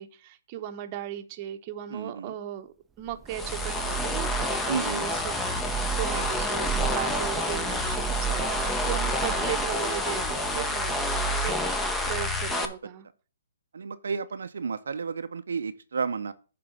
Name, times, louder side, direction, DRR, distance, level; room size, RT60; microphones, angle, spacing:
voice 1, 0.0-2.7 3.0-5.4 6.0-11.5 12.0-13.1, right 11 dB, 35° right, 0.9 m, -37 dB
voice 2, 1.9-2.3 4.7-5.0 12.6-12.7 13.7-16.3, right 5 dB, 80° right, 0.6 m, -32 dB
Thunder / Rain, 3.0-11.0, right 9 dB, 15° right, 0.3 m, -38 dB
sound 1, 3.3-12.7, left 1 dB, 10° left, 0.9 m, -28 dB
8.7 x 3.8 x 6.9 m
hypercardioid pair, 140°, 0 cm